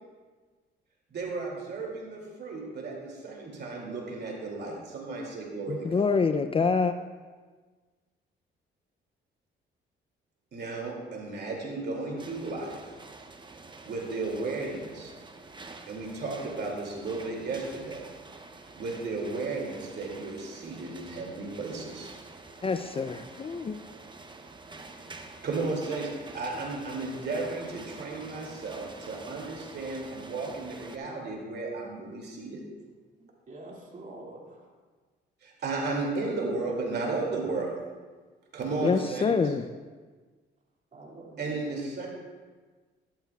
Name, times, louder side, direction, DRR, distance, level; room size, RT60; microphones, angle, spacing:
voice 1, 1.1-6.1 10.5-12.8 13.8-15.1 15.9-18.0 18.8-22.1 25.4-32.6 35.4-37.7 38.5-39.5 41.4-42.1, right 3 dB, 55° right, -1 dB, 2.5 m, -34 dB
voice 2, 5.7-6.9 22.6-23.8 38.8-39.7, left 5 dB, 30° left, 9 dB, 0.4 m, -26 dB
sound 1, 12.2-31.0, right 3 dB, 25° right, 0.8 m, -47 dB
voice 3, 33.2-34.7 40.9-41.7, right 2 dB, 40° right, -2 dB, 2.4 m, -46 dB
12.0 x 11.5 x 2.3 m, 1.4 s
cardioid pair, 90°, 20 cm